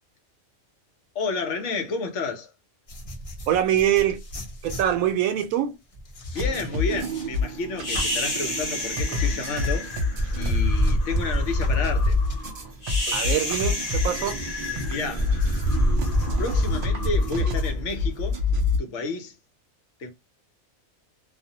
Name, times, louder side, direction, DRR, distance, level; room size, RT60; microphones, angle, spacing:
voice 1, 1.1-2.5 6.3-9.9 10.3-12.2 14.9-15.3 16.4-18.4 18.8-19.3 20.0-20.1, left 3 dB, 65° left, 0.9 m, -31 dB
sound 1, 2.9-12.6 13.0-17.7, left 1 dB, 50° left, 0.4 m, -40 dB
voice 2, 3.5-4.2 4.6-5.8 13.1-14.4, right 11 dB, 90° right, 1.0 m, -24 dB
sound 2, 6.4-18.8, left 3 dB, 60° right, 0.5 m, -27 dB
sound 3, 7.8-18.2, equal, 35° left, 0.8 m, -27 dB
2.5 x 2.0 x 2.7 m
omnidirectional pair, 1.4 m